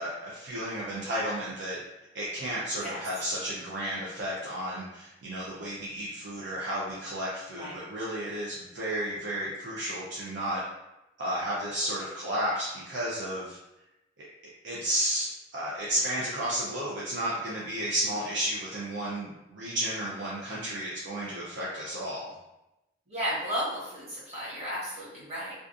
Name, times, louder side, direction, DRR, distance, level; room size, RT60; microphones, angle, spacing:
voice 1, 0.0-1.8 2.1-10.6 11.2-13.6 14.2-14.3 14.6-22.3, right 1 dB, 70° right, -6 dB, 0.5 m, -32 dB
voice 2, 23.1-25.5, equal, 35° right, -9 dB, 1.1 m, -34 dB
2.4 x 2.3 x 2.5 m, 0.94 s
head